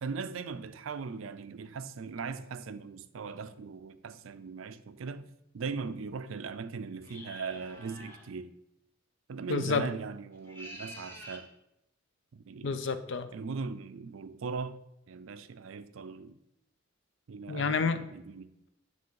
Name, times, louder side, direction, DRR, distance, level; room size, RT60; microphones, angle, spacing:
voice 1, 0.0-5.2 5.5-8.5 9.3-11.5 12.3-12.8 13.3-14.8 15.1-16.4 17.3-18.5, right 5 dB, 80° right, 0.5 m, -39 dB
sound 1, 7.0-8.3 10.3-11.5, equal, 10° left, 1.2 m, -47 dB
voice 2, 9.5-9.9 12.6-13.3 17.5-18.1, left 4 dB, 60° left, 0.5 m, -29 dB
9.4 x 3.5 x 4.6 m
head